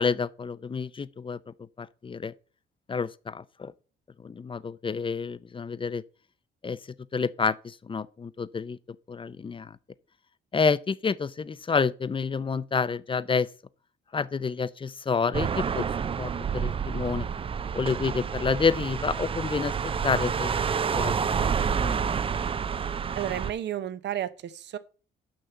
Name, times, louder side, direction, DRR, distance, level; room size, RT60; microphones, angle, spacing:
voice 1, 0.0-1.4 1.8-2.3 2.9-3.7 4.2-6.0 6.6-6.8 7.1-8.8 9.1-9.8 10.5-13.5 14.1-15.9 16.2-17.3 17.7-20.6 20.9-21.5 21.7-22.0, left 5 dB, 25° left, 0.5 m, -29 dB
sound 1, 15.3-23.5, right 6 dB, 30° right, 0.4 m, -29 dB
voice 2, 23.1-24.8, right 11 dB, 65° right, 0.8 m, -32 dB
6.5 x 5.9 x 6.8 m
cardioid pair, 90°, 20 cm